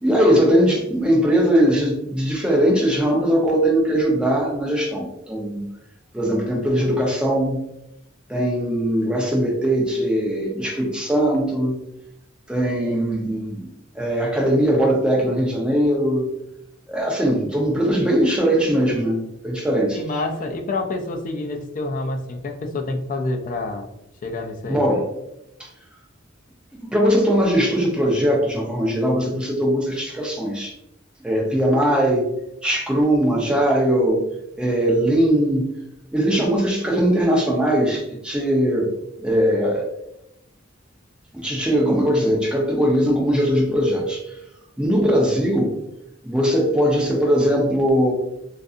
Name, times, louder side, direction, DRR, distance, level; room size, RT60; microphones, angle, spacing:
voice 1, 0.0-5.7 6.1-7.6 8.3-11.7 12.5-13.7 13.9-16.3 16.9-20.0 24.6-25.1 25.6-25.7 26.7-30.7 31.2-32.3 32.6-34.2 34.6-35.7 36.1-38.9 39.2-39.9 41.3-44.2 44.8-45.7 46.2-48.1, equal, 5° right, -2 dB, 0.6 m, -20 dB
voice 2, 19.9-23.9 24.2-24.8, left 2 dB, 40° left, 4 dB, 0.4 m, -28 dB
2.6 x 2.5 x 2.4 m, 0.84 s
head